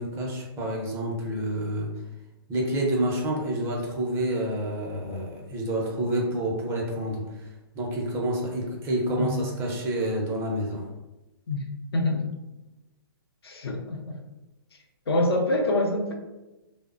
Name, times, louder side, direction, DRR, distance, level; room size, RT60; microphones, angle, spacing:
voice 1, 0.0-1.9 2.5-7.4 7.7-10.8, right 1 dB, 20° right, -2 dB, 0.5 m, -28 dB
voice 2, 11.9-12.3 13.4-14.2 15.1-16.1, left 1 dB, 85° left, 2 dB, 0.5 m, -25 dB
3.2 x 2.0 x 2.4 m, 1.0 s
hypercardioid pair, 135°, 13 cm